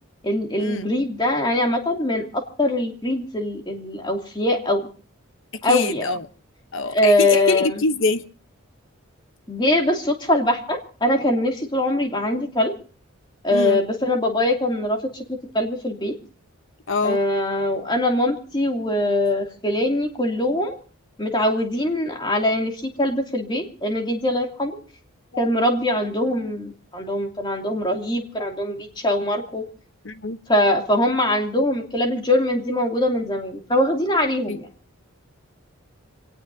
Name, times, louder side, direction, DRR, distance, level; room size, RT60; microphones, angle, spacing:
voice 1, 0.2-4.9 5.6-6.1 6.9-7.8 9.5-12.7 13.4-15.2 15.5-16.1 17.0-20.8 21.2-24.8 25.4-29.6 30.5-34.7, left 1 dB, 20° left, 2.7 m, -22 dB
voice 2, 5.7-6.3 6.7-8.2 13.5-13.8 16.9-17.2 25.3-25.5 30.0-30.4 34.5-34.6, left 3 dB, 65° left, 1.0 m, -24 dB
26.5 x 18.5 x 2.8 m
head